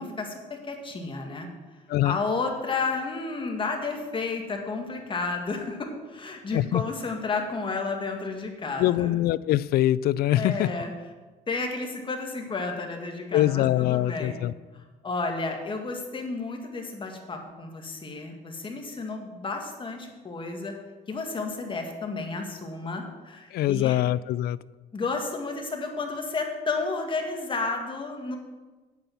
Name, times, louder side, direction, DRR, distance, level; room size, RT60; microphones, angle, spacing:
voice 1, 0.0-1.5 2.0-9.2 10.3-10.9 11.5-14.4 15.0-20.7 21.1-24.0 24.9-28.4, left 3 dB, 30° left, 3 dB, 1.9 m, -32 dB
voice 2, 6.5-6.8 8.8-10.7 13.3-14.5 23.5-24.6, left 14 dB, 65° left, 20 dB, 0.4 m, -23 dB
9.0 x 8.7 x 5.9 m, 1.3 s
cardioid pair, 110°, 17 cm